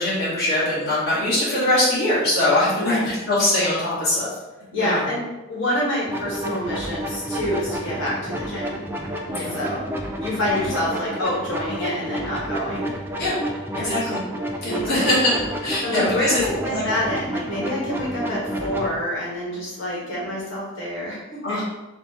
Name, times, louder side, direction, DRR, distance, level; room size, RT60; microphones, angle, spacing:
voice 1, 0.0-4.3 4.7-5.0 9.3-9.5 13.2-13.3 13.8-14.2 14.6-15.3 15.6-16.8 21.4-21.6, left 1 dB, 50° left, -10 dB, 1.4 m, -22 dB
voice 2, 4.7-5.2 5.5-8.8 9.5-9.8 10.2-12.9 13.7-14.2 14.6-15.1 15.8-21.2 21.5-21.6, left 1 dB, 70° left, -7 dB, 1.4 m, -27 dB
sound 1, 6.1-18.9, equal, 10° right, 0.3 m, -30 dB
4.2 x 2.1 x 4.0 m, 1.1 s
head